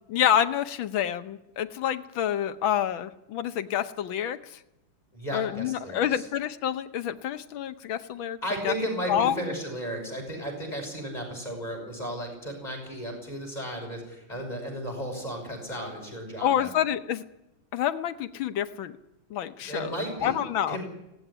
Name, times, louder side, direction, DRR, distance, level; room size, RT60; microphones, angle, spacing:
voice 1, 0.1-4.6 5.3-8.4 8.6-8.7 9.1-9.3 16.4-17.2 17.7-18.9 19.3-19.9 20.2-20.8, left 10 dB, 75° left, 11 dB, 1.7 m, -28 dB
voice 2, 5.1-6.3 8.4-16.7 19.6-20.4 20.7-20.8, equal, 20° left, 2 dB, 5.9 m, -34 dB
18.0 x 17.0 x 10.0 m, 0.92 s
omnidirectional pair, 2.2 m